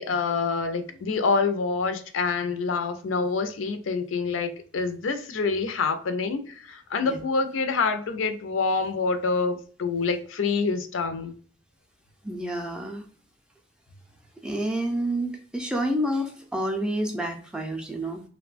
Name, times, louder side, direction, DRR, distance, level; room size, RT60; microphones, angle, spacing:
voice 1, 0.0-11.3, left 4 dB, 85° left, 0.5 m, -26 dB
voice 2, 12.2-13.1 14.4-18.2, right 1 dB, 5° right, 0.4 m, -29 dB
3.1 x 2.2 x 2.4 m
head